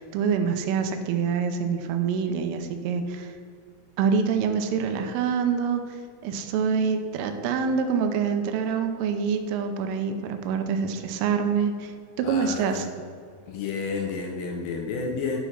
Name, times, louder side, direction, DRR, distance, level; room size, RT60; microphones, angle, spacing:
voice 1, 0.0-3.3 4.0-12.9, right 6 dB, 80° right, 7 dB, 3.3 m, -26 dB
voice 2, 12.2-12.9 13.5-15.4, left 4 dB, 80° left, 2 dB, 3.2 m, -31 dB
10.0 x 6.1 x 5.7 m, 2.2 s
omnidirectional pair, 5.9 m